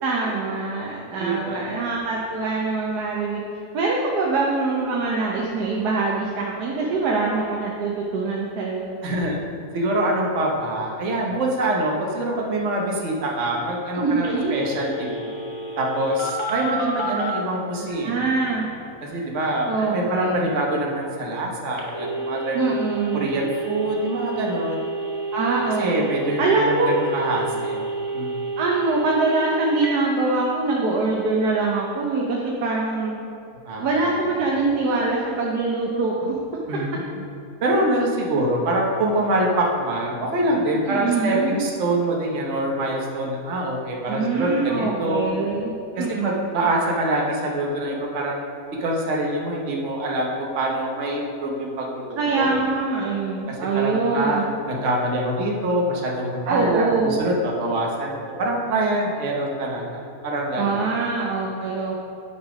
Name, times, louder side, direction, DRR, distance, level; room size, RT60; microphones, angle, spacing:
voice 1, 0.0-3.4 3.7-9.0 13.9-14.6 17.7-18.7 19.7-20.5 22.5-23.3 25.3-26.1 26.4-26.9 28.6-33.1 33.8-36.4 40.8-41.6 44.1-46.7 52.2-54.6 56.5-57.3 60.6-61.9, right 3 dB, 90° right, -2 dB, 1.4 m, -24 dB
voice 2, 1.2-1.9 9.0-9.4 9.7-15.2 15.8-18.1 19.0-22.8 23.1-24.8 25.8-27.9 28.1-28.4 33.6-34.2 36.7-37.2 37.6-45.3 46.2-48.4 48.8-52.5 53.5-60.9, right 1 dB, 55° right, -1 dB, 1.3 m, -25 dB
Telephone, 14.2-17.3 21.8-30.0, right 2 dB, 25° left, 0.8 m, -30 dB
8.4 x 5.6 x 4.9 m, 2.7 s
omnidirectional pair, 1.6 m